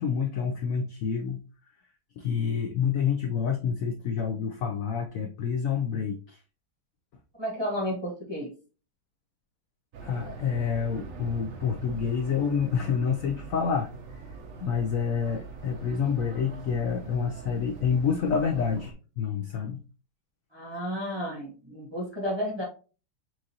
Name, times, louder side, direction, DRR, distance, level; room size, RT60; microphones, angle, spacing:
voice 1, 0.0-1.4 2.2-6.4 10.0-13.9 14.2-14.3 14.6-19.8, left 6 dB, 70° left, 2 dB, 0.8 m, -28 dB
voice 2, 7.4-8.5 20.5-22.6, equal, 20° right, -2 dB, 0.9 m, -32 dB
sound 1, 9.9-18.9, right 4 dB, 60° right, 1.0 m, -43 dB
6.2 x 2.5 x 2.7 m, 0.35 s
omnidirectional pair, 1.9 m